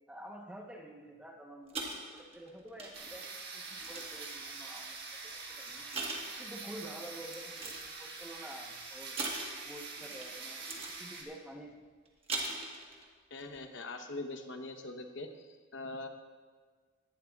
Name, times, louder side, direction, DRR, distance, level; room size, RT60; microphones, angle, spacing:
voice 1, 0.1-5.8 6.4-9.2 9.6-11.8, right 1 dB, 5° right, 0 dB, 1.0 m, -49 dB
sound 1, 1.7-4.6 5.3-5.5 5.9-6.8 7.3-7.9 9.2-10.3 10.6-11.0 12.0-13.0 13.4-13.6, right 2 dB, 25° right, 1.4 m, -41 dB
sound 2, 2.9-11.2, right 4 dB, 50° right, 1.6 m, -45 dB
voice 2, 13.3-15.3 15.7-16.1, left 2 dB, 60° left, 6 dB, 1.0 m, -42 dB
18.0 x 11.5 x 2.4 m, 1.5 s
head